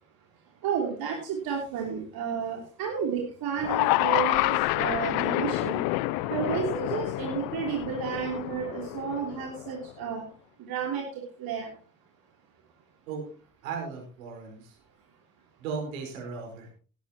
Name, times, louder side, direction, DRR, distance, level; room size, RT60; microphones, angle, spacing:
voice 1, 0.6-5.8 6.3-10.2 10.6-11.7, right 7 dB, 60° right, 0 dB, 3.3 m, -32 dB
sound 1, 3.6-9.9, left 19 dB, 60° left, 0.6 m, -28 dB
voice 2, 13.6-14.8 15.6-16.7, right 5 dB, 75° right, 2 dB, 4.9 m, -36 dB
18.0 x 10.5 x 3.0 m, 0.39 s
hypercardioid pair, 60°, 41 cm